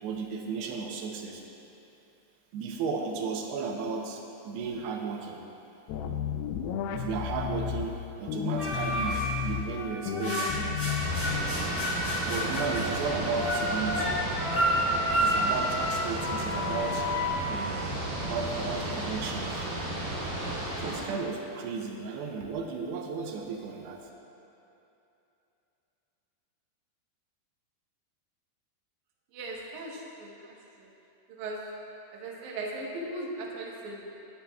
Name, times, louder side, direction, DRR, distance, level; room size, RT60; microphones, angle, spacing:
voice 1, 0.0-1.4 2.5-5.4 6.9-11.7 12.3-14.2 15.1-17.1 17.5-17.9 18.2-19.7 20.8-24.1, right 5 dB, 85° right, 1 dB, 2.9 m, -34 dB
sound 1, 5.9-7.9 8.3-9.6 10.1-11.6, left 9 dB, 80° left, 2.4 m, -32 dB
sound 2, 8.6-9.2 9.8-17.3, equal, 20° left, 1.4 m, -30 dB
sound 3, 11.0-21.0, right 1 dB, 45° right, 3.2 m, -33 dB
voice 2, 29.3-30.9 31.3-31.6 32.1-34.1, right 2 dB, 65° right, -2 dB, 2.2 m, -38 dB
18.0 x 10.0 x 2.4 m, 2.9 s
omnidirectional pair, 4.7 m